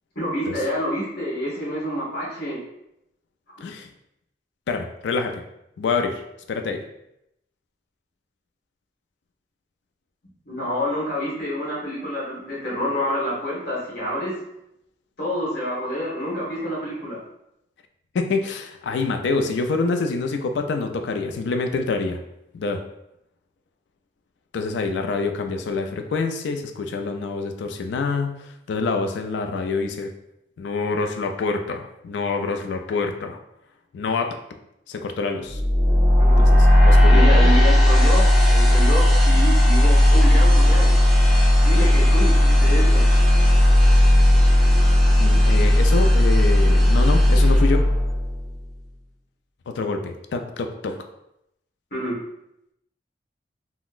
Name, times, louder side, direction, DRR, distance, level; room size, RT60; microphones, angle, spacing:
voice 1, 0.1-2.6 10.5-14.4 15.2-17.2 36.2-36.5 37.1-40.9 41.6-43.1 51.9-52.2, equal, 60° left, -6 dB, 1.3 m, -28 dB
voice 2, 4.7-5.4 5.8-6.2 6.5-6.9 18.1-22.2 22.5-22.8 24.5-30.1 30.6-33.4 33.9-34.4 34.9-35.6 36.4-37.5 45.2-47.9 49.7-51.0, left 4 dB, 75° left, 6 dB, 0.3 m, -26 dB
sound 1, 35.5-48.6, left 1 dB, ahead, 0.6 m, -15 dB
3.8 x 2.0 x 2.4 m, 0.82 s
head